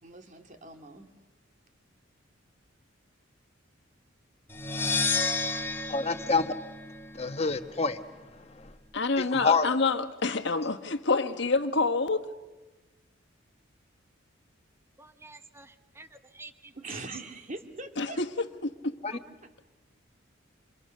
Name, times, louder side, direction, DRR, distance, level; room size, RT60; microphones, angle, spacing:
voice 1, 0.0-1.1 16.7-18.2 19.4-19.6, right 2 dB, 35° right, 2.3 m, -42 dB
sound 1, 4.5-7.3, left 3 dB, 10° left, 1.7 m, -31 dB
voice 2, 5.9-6.5 7.1-8.3 8.5-8.7 9.2-9.7 19.0-19.2, left 4 dB, 30° left, 1.2 m, -28 dB
voice 3, 8.9-12.3 18.0-18.9, left 3 dB, 60° left, 1.4 m, -27 dB
voice 4, 15.0-16.7, right 3 dB, 10° right, 1.0 m, -50 dB
30.0 x 27.5 x 6.6 m
head